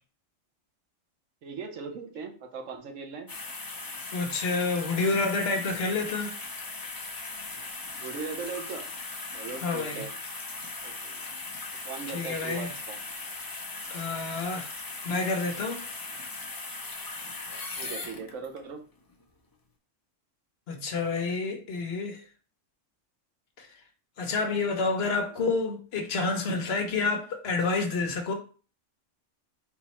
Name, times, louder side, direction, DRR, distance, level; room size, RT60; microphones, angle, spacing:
voice 1, 1.4-3.3 7.9-8.9 9.3-10.1 10.8-11.2 11.8-13.0 17.8-18.8 25.3-25.5, right 5 dB, 80° right, 1.2 m, -39 dB
sound 1, 3.3-18.6 19.1-19.2, left 3 dB, 35° left, 0.3 m, -39 dB
voice 2, 4.1-6.3 9.6-10.0 12.1-12.7 13.9-14.7 15.0-15.9 20.7-22.2 23.6-23.7 24.2-28.3, left 3 dB, 55° left, 1.0 m, -29 dB
3.9 x 3.1 x 4.2 m
omnidirectional pair, 1.3 m